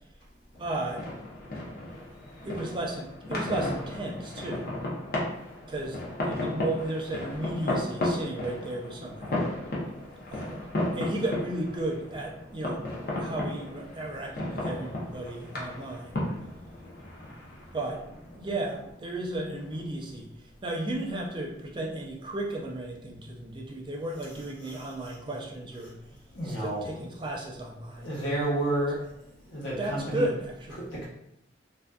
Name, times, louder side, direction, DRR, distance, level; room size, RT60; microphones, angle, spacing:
sound 1, 0.5-19.8, left 1 dB, 50° left, 0.6 m, -35 dB
voice 1, 0.6-1.1 2.4-4.7 5.7-9.4 10.3-10.7 10.9-12.9 13.2-16.3 17.7-18.0 18.4-26.2 26.4-28.1 29.5-30.9, right 1 dB, 25° right, -1 dB, 0.4 m, -34 dB
voice 2, 24.2-25.2 25.8-26.9 27.9-30.3 30.7-31.1, right 1 dB, 80° left, -6 dB, 1.0 m, -33 dB
2.5 x 2.2 x 2.2 m, 0.79 s
head